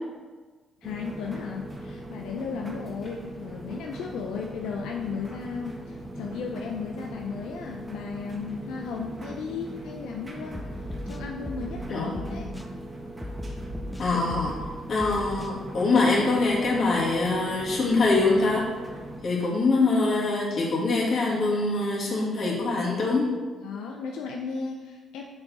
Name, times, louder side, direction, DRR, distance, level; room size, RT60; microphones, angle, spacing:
voice 1, 0.8-10.6 11.0-12.5 14.1-14.2 19.4-19.5 23.6-25.2, left 5 dB, 90° left, 1 dB, 0.5 m, -35 dB
sound 1, 0.8-19.2, right 1 dB, 20° right, 1.1 m, -40 dB
sound 2, 10.5-11.8 12.1-12.7 13.2-14.7 15.0-15.5, equal, 5° left, 0.5 m, -37 dB
voice 2, 11.9-12.4 14.0-14.5 14.9-18.6 19.2-23.3, left 3 dB, 50° left, -4 dB, 2.0 m, -24 dB
6.4 x 4.6 x 4.2 m, 1.4 s
cardioid pair, 90°, 0 cm